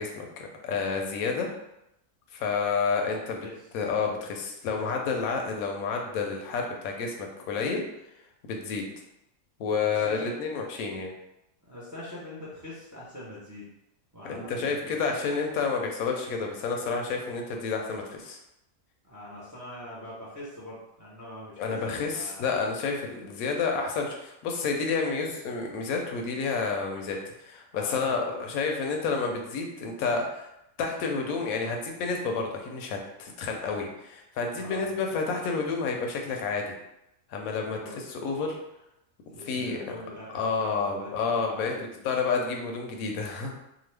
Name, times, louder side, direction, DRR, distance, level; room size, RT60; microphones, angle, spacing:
voice 1, 0.0-1.5 2.3-3.5 3.7-7.8 8.5-8.8 9.6-11.1 14.2-18.4 21.6-30.5 30.8-36.7 37.3-37.8 38.1-38.6 39.5-39.8 40.3-41.7 42.0-43.6, left 4 dB, 80° left, 2 dB, 1.0 m, -30 dB
voice 2, 9.8-10.4 11.6-13.7 14.1-15.2 19.0-22.5 27.7-28.4 34.6-35.0 37.7-38.0 39.3-41.8, left 1 dB, 20° right, -7 dB, 0.4 m, -43 dB
2.9 x 2.2 x 3.2 m, 0.85 s
omnidirectional pair, 1.5 m